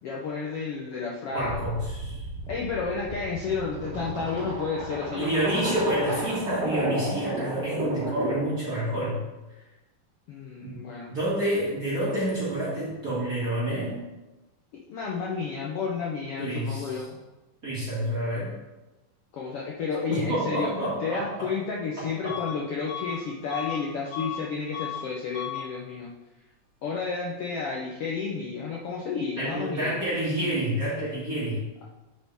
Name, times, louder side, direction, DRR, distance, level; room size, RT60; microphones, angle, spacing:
voice 1, 0.0-1.6 2.5-5.7 10.3-11.2 14.9-17.2 19.3-26.1 26.8-30.0, left 5 dB, 90° left, -3 dB, 1.3 m, -31 dB
voice 2, 1.3-2.2 5.1-9.2 10.6-10.8 11.1-14.0 16.4-17.0 17.6-18.5 20.1-21.2 22.2-22.3 29.4-31.6, right 1 dB, 25° right, -10 dB, 2.8 m, -28 dB
sound 1, 1.4-8.6, right 1 dB, 55° right, 2.3 m, -32 dB
Bus / Alarm, 22.3-22.6 22.9-24.4 24.7-25.1 25.3-25.7, left 10 dB, 75° left, 2.8 m, -35 dB
9.7 x 5.9 x 3.5 m, 1.1 s
omnidirectional pair, 3.9 m